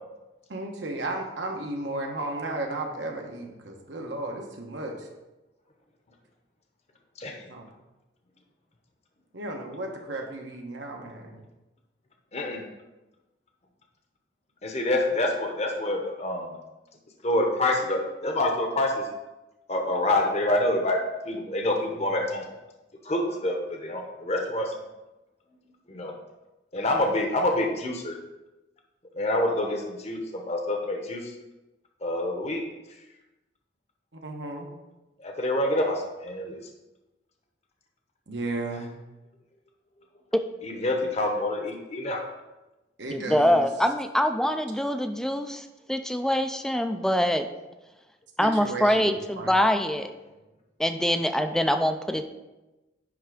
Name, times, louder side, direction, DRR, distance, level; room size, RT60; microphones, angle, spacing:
voice 1, 0.5-5.1 7.5-7.7 9.3-11.4 34.1-34.7 38.3-38.9 43.0-43.7 48.4-49.5, right 2 dB, 70° right, 2 dB, 1.2 m, -34 dB
voice 2, 12.3-12.6 14.6-16.5 17.2-19.0 19.7-21.0 21.3-22.5 23.0-24.7 25.9-26.1 26.7-28.1 29.1-31.3 32.0-32.6 35.2-36.6 40.6-42.2, left 1 dB, 35° left, 1 dB, 0.9 m, -27 dB
voice 3, 43.1-47.5 48.4-50.1 50.8-52.2, equal, 5° left, 7 dB, 0.4 m, -24 dB
10.0 x 3.5 x 4.9 m, 1.1 s
head